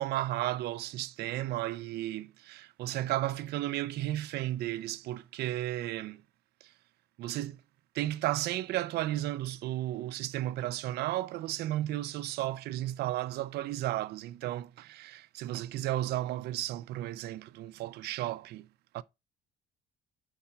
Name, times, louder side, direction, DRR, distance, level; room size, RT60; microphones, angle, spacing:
voice 1, 0.0-6.2 6.6-6.7 7.2-7.6 7.9-18.7 18.9-19.0, right 15 dB, 75° right, 0.5 m, -34 dB
5.6 x 4.8 x 4.4 m
cardioid pair, 110°, 17 cm